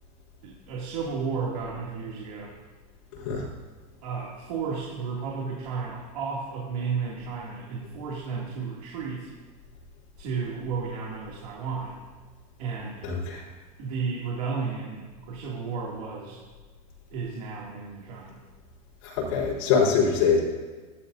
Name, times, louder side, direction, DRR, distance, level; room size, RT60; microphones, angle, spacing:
voice 1, 0.4-2.5 4.0-9.3 10.2-12.0 12.6-13.0 13.8-16.4 17.1-18.4, right 5 dB, 70° right, -4 dB, 2.6 m, -33 dB
voice 2, 3.1-3.5 13.0-13.4 19.0-20.4, left 5 dB, 60° left, -6 dB, 4.1 m, -24 dB
15.0 x 12.0 x 2.7 m, 1.4 s
supercardioid pair, 160°, 20 cm